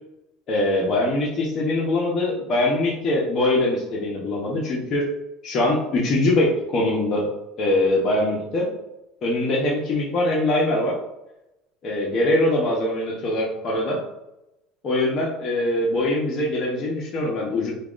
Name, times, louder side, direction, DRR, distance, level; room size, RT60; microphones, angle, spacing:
voice 1, 0.5-5.1 5.4-7.3 7.6-8.7 9.2-10.9 11.8-14.0 14.8-17.7, left 1 dB, 35° left, -5 dB, 0.9 m, -22 dB
5.6 x 2.3 x 2.5 m, 0.91 s
cardioid pair, 140°, 0 cm